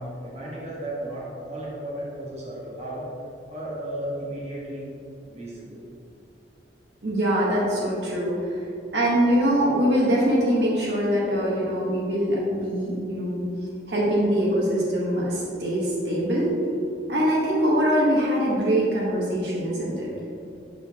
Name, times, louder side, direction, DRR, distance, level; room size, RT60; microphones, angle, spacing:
voice 1, 0.0-3.1 3.5-4.9 5.3-5.8, right 1 dB, 35° right, -5 dB, 1.3 m, -34 dB
voice 2, 7.0-8.5 8.9-13.4 13.9-16.5 17.1-20.1, equal, 65° right, -5 dB, 1.2 m, -23 dB
6.7 x 6.2 x 2.9 m, 2.5 s
head